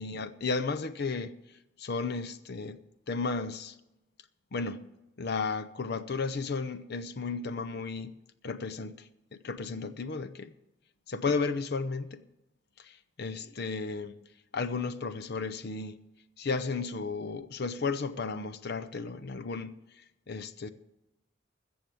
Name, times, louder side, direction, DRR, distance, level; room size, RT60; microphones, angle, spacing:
voice 1, 0.0-1.3 1.8-2.8 3.1-3.8 4.5-8.1 8.4-10.5 11.1-12.2 13.2-14.2 14.5-16.0 16.4-20.7, left 4 dB, 55° left, 0.6 m, -34 dB
14.5 x 7.0 x 7.7 m
head